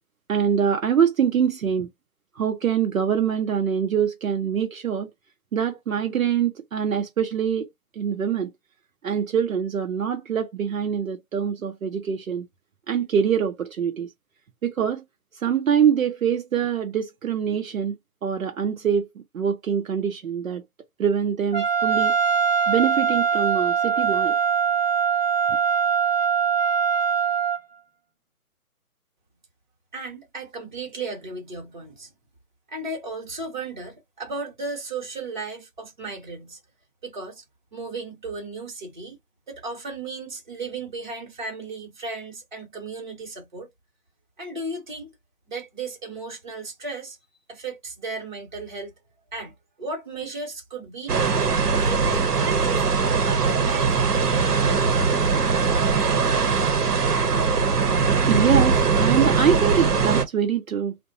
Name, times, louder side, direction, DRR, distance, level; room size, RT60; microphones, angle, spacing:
voice 1, 0.3-1.9 2.4-5.1 5.5-7.7 7.9-8.5 9.0-12.5 12.9-14.1 14.6-15.0 15.4-18.0 18.2-19.1 19.3-20.6 21.0-22.2 22.7-24.4 25.5-25.6 58.3-61.0, right 8 dB, 60° right, 0.6 m, -24 dB
Trumpet, 21.5-27.6, right 6 dB, 30° left, 0.5 m, -22 dB
voice 2, 29.9-32.1 32.7-36.6 37.0-37.4 37.7-39.2 39.5-43.7 44.4-45.1 45.5-47.2 47.5-48.9 49.3-52.8 53.1-55.0, right 3 dB, 30° right, 0.9 m, -35 dB
sound 1, 51.1-60.2, right 5 dB, 90° right, 0.9 m, -21 dB
2.7 x 2.2 x 2.5 m
hypercardioid pair, 165°, 45 cm